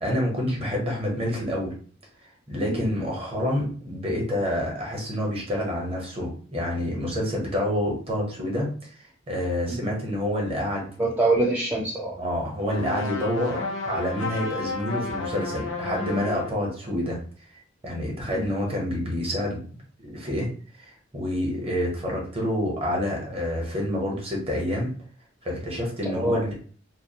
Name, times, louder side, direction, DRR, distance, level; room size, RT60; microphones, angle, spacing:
voice 1, 0.0-1.7 2.5-8.9 9.3-10.9 12.2-17.2 17.8-20.5 20.8-24.9 25.4-26.5, left 1 dB, 30° right, -1 dB, 0.8 m, -28 dB
voice 2, 11.0-12.2 18.3-18.4 26.1-26.5, right 2 dB, 10° right, -5 dB, 0.3 m, -25 dB
sound 1, 12.6-16.6, left 3 dB, 80° left, 0.5 m, -32 dB
2.4 x 2.2 x 2.7 m, 0.43 s
head